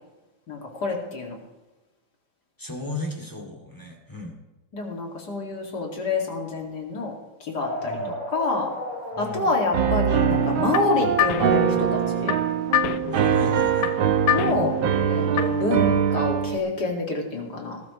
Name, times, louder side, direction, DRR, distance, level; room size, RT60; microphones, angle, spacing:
voice 1, 0.5-1.4 4.7-7.1 7.4-8.7 9.2-12.4 14.3-14.7 15.1-17.8, left 3 dB, 55° left, 0 dB, 2.9 m, -27 dB
voice 2, 2.6-4.3 7.8-8.2 9.1-9.5 13.1-13.9 14.4-14.7, left 2 dB, 10° left, 0 dB, 2.4 m, -36 dB
sound 1, 7.6-12.1, equal, 35° left, 4.0 m, -35 dB
Piano, 9.7-16.6, right 8 dB, 90° right, 1.7 m, -23 dB
sound 2, 10.3-15.7, left 12 dB, 85° left, 0.7 m, -28 dB
19.5 x 12.0 x 3.2 m, 1.1 s
omnidirectional pair, 2.2 m